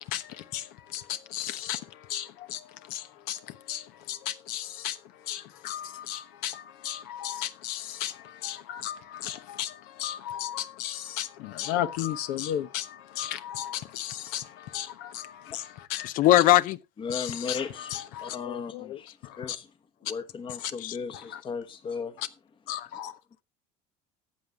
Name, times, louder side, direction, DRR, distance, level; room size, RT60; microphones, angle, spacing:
voice 1, 0.0-16.1 17.1-18.4 19.2-19.6 20.6-20.7 21.3-21.4 22.2-22.3 22.7-23.2, left 11 dB, 75° left, 1.1 m, -35 dB
voice 2, 16.0-16.8 18.4-19.0 20.8-21.0 22.8-22.9, left 15 dB, 60° left, 0.7 m, -22 dB
voice 3, 17.0-17.9 18.2-19.7 20.0-22.2, left 5 dB, 30° left, 1.2 m, -36 dB
14.0 x 8.0 x 3.6 m
supercardioid pair, 110°, 16 cm